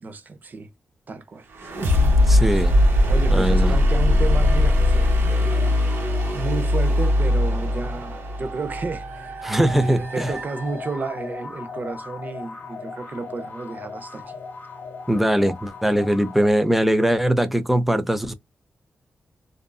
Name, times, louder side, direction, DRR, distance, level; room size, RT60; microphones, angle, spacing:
voice 1, 0.0-0.7 1.1-1.5 3.1-5.8 6.3-9.4 9.8-14.4, right 4 dB, 50° right, 0.7 m, -32 dB
sound 1, 1.5-11.3, left 1 dB, 75° right, 1.2 m, -20 dB
voice 2, 2.3-2.7 3.3-3.8 9.4-10.3 15.1-18.3, right 1 dB, 5° right, 0.5 m, -21 dB
sound 2, 5.5-7.1 8.5-16.5, left 4 dB, 55° left, 1.0 m, -39 dB
2.6 x 2.4 x 2.3 m
cardioid pair, 70°, 4 cm